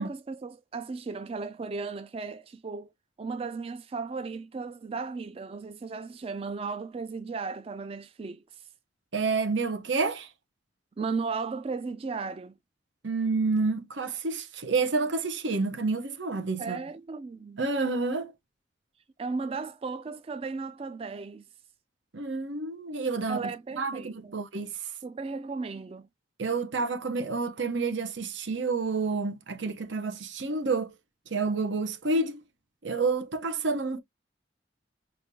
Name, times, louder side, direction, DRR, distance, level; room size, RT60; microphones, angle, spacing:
voice 1, 0.0-2.9 3.2-8.7 11.0-12.5 16.6-17.6 19.2-21.4 23.3-24.4 25.0-26.1, right 4 dB, 30° right, 0.3 m, -35 dB
voice 2, 9.1-10.3 13.0-16.8 17.6-18.3 22.1-24.7 26.4-30.9 31.3-32.4 32.8-34.0, right 3 dB, 80° right, 0.9 m, -29 dB
5.0 x 2.5 x 2.7 m
head